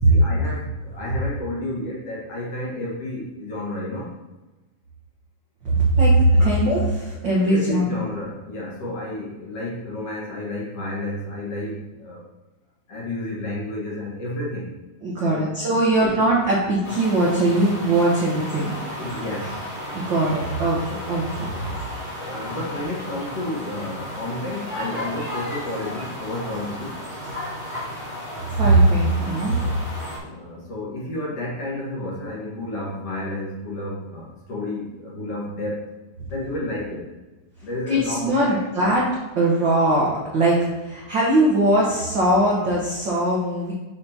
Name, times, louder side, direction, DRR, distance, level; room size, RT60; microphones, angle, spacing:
voice 1, 0.1-4.1 6.4-6.5 7.5-12.2 12.9-14.8 15.2-15.5 16.0-16.1 18.9-19.7 22.2-27.0 30.0-35.9 36.3-37.1 37.6-38.9, left 1 dB, 50° left, -6 dB, 2.3 m, -31 dB
voice 2, 5.6-7.9 15.0-18.7 19.9-21.5 28.5-29.6 37.9-39.1 39.3-43.7, right 1 dB, 70° right, -5 dB, 1.1 m, -20 dB
sound 1, 16.8-30.2, equal, 20° left, 1.3 m, -34 dB
6.8 x 6.5 x 2.9 m, 1.1 s
omnidirectional pair, 3.9 m